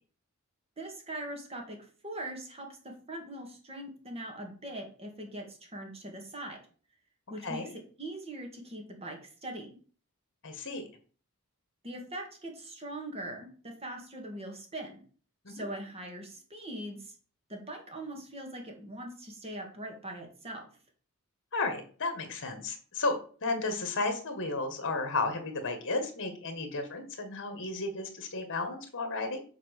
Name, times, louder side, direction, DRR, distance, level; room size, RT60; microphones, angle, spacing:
voice 1, 0.8-6.6 7.3-7.7 8.0-9.7 11.8-15.0 15.5-17.2 17.5-20.7, right 1 dB, 30° right, 2 dB, 2.0 m, -41 dB
voice 2, 10.4-10.9 15.4-15.7 21.5-29.4, left 3 dB, 60° left, 7 dB, 1.9 m, -33 dB
7.5 x 4.0 x 6.7 m, 0.42 s
head